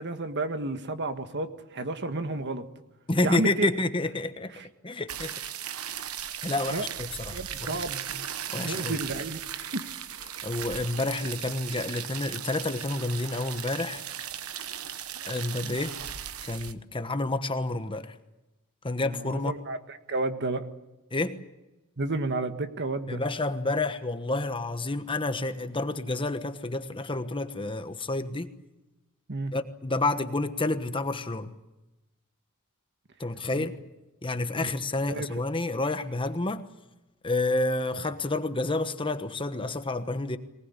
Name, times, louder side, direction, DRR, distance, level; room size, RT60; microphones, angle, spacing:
voice 1, 0.0-2.6 3.2-3.7 4.6-4.7 6.7-6.9 7.3-8.3 8.6-9.9 15.2-15.3 15.6-15.8 19.0-20.7 22.0-23.2 29.3-29.5 33.5-33.7 34.6-34.7 35.1-35.3, right 2 dB, 55° right, 1.6 m, -32 dB
voice 2, 3.1-4.5 4.8-5.3 6.4-7.8 8.5-9.0 10.4-14.0 15.3-16.0 16.4-18.2 18.8-19.5 21.1-21.4 23.1-28.5 29.5-31.5 33.2-33.8 34.2-36.6 37.2-40.4, left 2 dB, 25° left, 1.2 m, -29 dB
sound 1, 5.1-16.7, right 9 dB, 85° right, 1.2 m, -37 dB
23.0 x 19.5 x 9.8 m
head